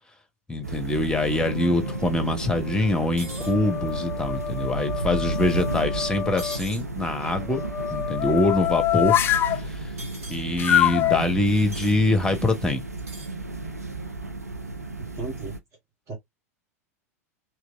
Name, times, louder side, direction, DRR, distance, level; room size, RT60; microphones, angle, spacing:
voice 1, 0.5-7.6 7.9-9.2 10.3-12.8, left 2 dB, 10° left, 1.0 m, -24 dB
sound 1, 0.6-15.6, right 3 dB, 90° right, 0.6 m, -33 dB
sound 2, 1.3-2.1 2.6-6.6 7.4-9.6 10.6-11.2, left 11 dB, 25° left, 0.4 m, -26 dB
sound 3, 3.2-3.5 6.4-6.8 10.0-10.4 11.7-12.0 13.0-13.3, right 1 dB, 65° right, 2.0 m, -41 dB
voice 2, 15.0-15.6 16.1-16.2, right 4 dB, 35° right, 1.4 m, -35 dB
3.1 x 2.9 x 2.5 m
figure-of-eight pair, 85°, 8 cm